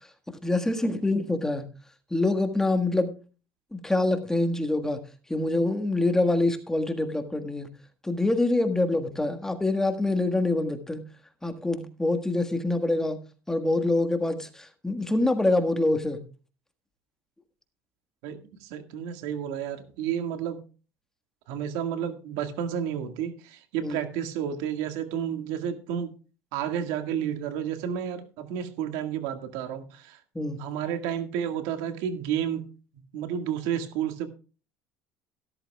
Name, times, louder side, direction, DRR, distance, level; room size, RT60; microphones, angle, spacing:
voice 1, 0.4-1.7 2.1-3.1 3.7-5.0 5.3-7.7 8.0-11.0 11.4-13.2 13.5-16.2 23.8-24.0 30.3-30.6, left 2 dB, 5° left, 7 dB, 1.6 m, -25 dB
voice 2, 18.2-20.6 21.5-26.1 26.5-30.2 30.6-32.7 33.1-34.3, right 9 dB, 80° right, 7 dB, 1.9 m, -31 dB
15.0 x 13.0 x 2.3 m, 0.35 s
cardioid pair, 125°, 7 cm